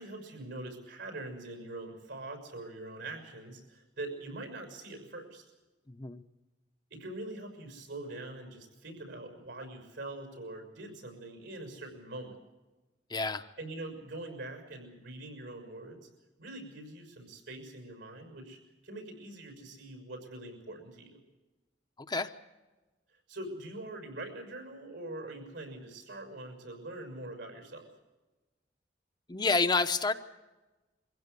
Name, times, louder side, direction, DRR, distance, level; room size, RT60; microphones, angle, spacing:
voice 1, 0.0-5.5 6.9-12.3 13.6-16.1 16.4-21.2 23.3-27.9, right 2 dB, 80° right, 5 dB, 6.2 m, -43 dB
voice 2, 5.9-6.2 13.1-13.5 22.0-22.3 29.3-30.1, left 3 dB, 25° left, 8 dB, 0.8 m, -29 dB
23.5 x 16.0 x 8.2 m, 1.1 s
head